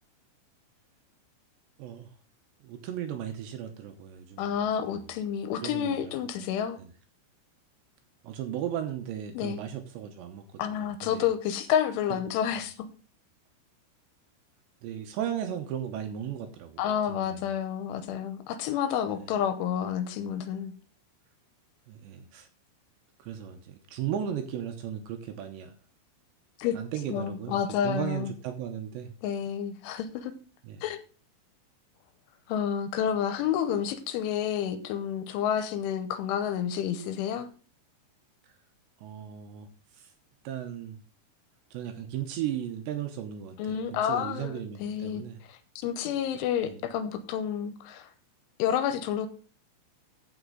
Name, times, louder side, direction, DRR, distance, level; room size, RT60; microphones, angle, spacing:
voice 1, 1.8-2.1 2.6-4.5 4.8-5.0 5.6-6.1 6.4-6.5 6.8-6.9 8.2-11.3 12.1-12.2 12.6-12.7 14.8-16.8 17.1-17.4 19.2-19.3 21.9-22.5 23.2-25.8 26.7-29.1 30.6-30.8 39.0-39.7 39.9-40.1 40.4-41.0 41.7-45.4 46.7-46.8, right 10 dB, 80° right, 6 dB, 2.8 m, -36 dB
voice 2, 4.4-6.8 9.3-9.6 10.6-12.7 16.8-20.7 26.6-26.8 27.1-28.3 29.2-30.3 30.8-31.0 32.5-37.5 43.6-45.2 45.5-48.1 48.6-49.3, left 9 dB, 80° left, 11 dB, 3.1 m, -29 dB
14.5 x 5.9 x 3.8 m, 0.38 s
omnidirectional pair, 5.8 m